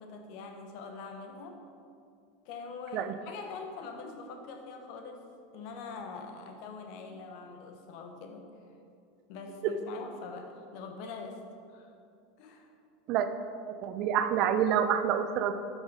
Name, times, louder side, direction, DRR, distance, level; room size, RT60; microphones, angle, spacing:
voice 1, 0.0-1.6 2.4-8.5 9.3-11.4 11.7-11.9 12.4-12.7, left 4 dB, 55° left, 5 dB, 1.2 m, -43 dB
voice 2, 13.6-15.5, right 9 dB, 50° right, 9 dB, 0.6 m, -27 dB
11.5 x 6.3 x 5.2 m, 2.5 s
figure-of-eight pair, 80°, 0 cm